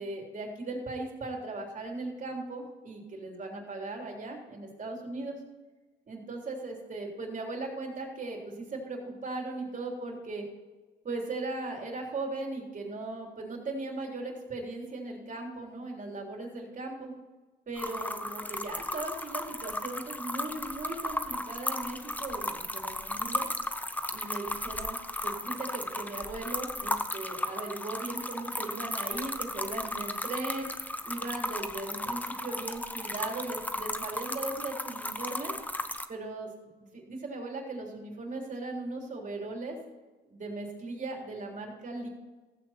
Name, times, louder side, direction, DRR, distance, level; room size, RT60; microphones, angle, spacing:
voice 1, 0.0-5.4 6.1-10.4 11.0-17.1 17.7-23.5 24.1-35.5 36.1-36.5 36.8-39.8 40.3-42.1, right 2 dB, 40° right, 0 dB, 3.7 m, -38 dB
sound 1, 17.8-36.1, left 1 dB, 10° left, 0.8 m, -35 dB
15.5 x 8.2 x 4.4 m, 1.2 s
cardioid pair, 90°, 20 cm